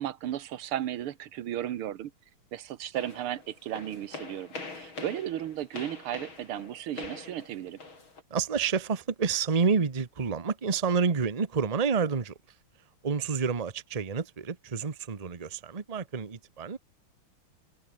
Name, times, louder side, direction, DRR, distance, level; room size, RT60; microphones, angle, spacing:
voice 1, 0.0-2.1 2.5-7.8, right 11 dB, 90° right, 2.0 m, -35 dB
sound 1, 2.9-8.2, left 3 dB, 70° left, 6.2 m, -44 dB
voice 2, 8.3-12.4 13.0-16.8, right 5 dB, 25° right, 0.9 m, -29 dB
omnidirectional pair, 2.3 m